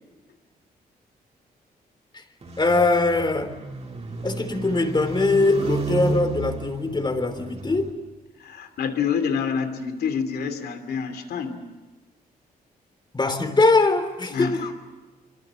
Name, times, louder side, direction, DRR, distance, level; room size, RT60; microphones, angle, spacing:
sound 1, 2.4-7.9, right 3 dB, 45° right, 4.5 m, -31 dB
voice 1, 2.6-3.5 4.2-7.9 13.1-14.7, left 3 dB, 30° left, 3.5 m, -22 dB
voice 2, 8.4-11.6 14.3-14.7, left 6 dB, 85° left, 2.7 m, -27 dB
26.5 x 23.5 x 7.5 m
cardioid pair, 70°, 16 cm